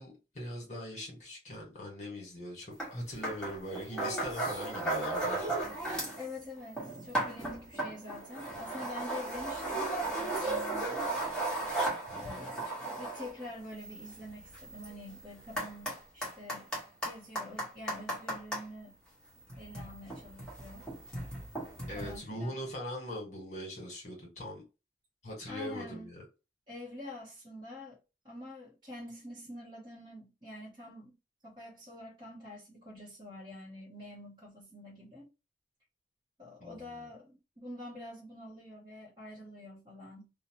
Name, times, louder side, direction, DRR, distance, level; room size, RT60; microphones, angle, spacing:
voice 1, 0.0-5.7 12.1-12.5 21.9-24.6 25.2-26.2 36.6-37.0, equal, 40° left, 1.3 m, -41 dB
sound 1, 2.8-2.9 3.2-6.3 6.6-18.6 19.4-22.2, right 2 dB, 5° left, 1.1 m, -36 dB
voice 2, 6.2-11.1 12.2-16.7 17.0-19.0 19.6-20.9 21.9-22.6 25.5-26.1 26.7-28.0 28.2-31.2 31.4-35.3 36.4-40.3, left 1 dB, 25° right, 0.8 m, -46 dB
2.7 x 2.0 x 2.9 m
head